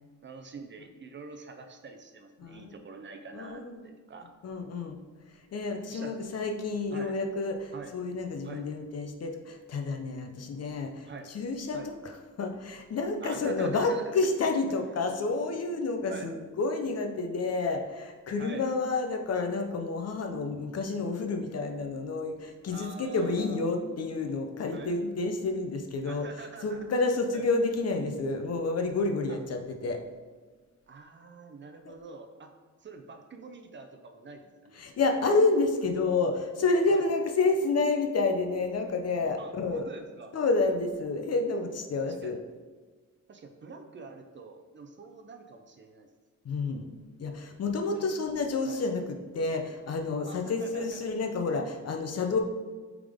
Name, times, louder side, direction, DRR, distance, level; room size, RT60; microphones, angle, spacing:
voice 1, 0.2-4.3 5.9-6.2 6.9-7.1 7.7-7.9 8.4-8.7 11.1-11.3 11.7-11.9 13.2-14.1 14.7-15.0 16.1-16.3 18.4-18.7 22.7-23.6 24.7-24.9 26.0-26.8 27.3-27.4 29.3-29.4 30.9-32.5 32.8-34.8 36.9-37.0 39.4-40.3 42.0-42.4 43.3-46.1 47.9-48.1 48.7-48.8 50.3-51.0, right 4 dB, 40° right, 5 dB, 0.5 m, -45 dB
voice 2, 2.4-2.7 3.3-3.8 4.4-5.0 5.5-30.0 34.7-39.8 40.3-42.4 46.4-46.9 47.2-52.4, left 3 dB, 55° left, 4 dB, 0.7 m, -29 dB
8.6 x 3.7 x 3.6 m, 1.4 s
wide cardioid pair, 160°, 31 cm